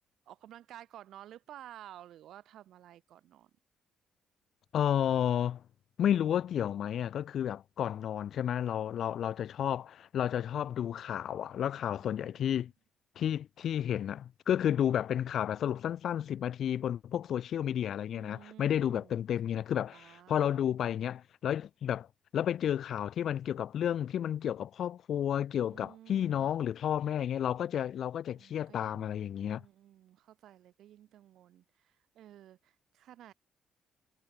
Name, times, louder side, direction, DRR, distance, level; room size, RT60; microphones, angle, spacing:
voice 1, 0.3-3.5 12.0-12.4 18.2-19.2 19.9-20.6 25.7-26.6 28.3-33.3, right 12 dB, 75° right, 2.5 m, -53 dB
voice 2, 4.7-5.6 6.0-12.7 13.2-22.1 22.3-29.6, left 10 dB, 65° left, 0.7 m, -31 dB
cardioid pair, 90°, 0 cm